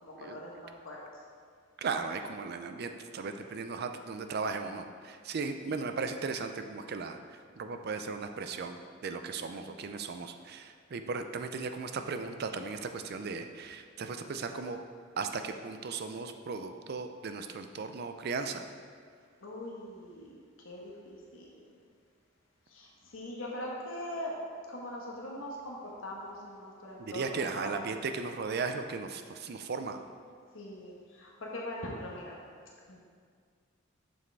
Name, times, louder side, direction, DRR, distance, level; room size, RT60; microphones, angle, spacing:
voice 1, 0.0-1.0 5.7-6.0 19.4-20.3 20.6-21.5 22.7-24.4 24.7-28.0 30.5-32.3 32.9-33.0, left 1 dB, 70° left, -3 dB, 1.2 m, -42 dB
voice 2, 1.8-14.8 15.2-18.7 27.0-30.0, right 4 dB, 50° right, 7 dB, 0.5 m, -36 dB
7.4 x 6.2 x 3.4 m, 2.1 s
head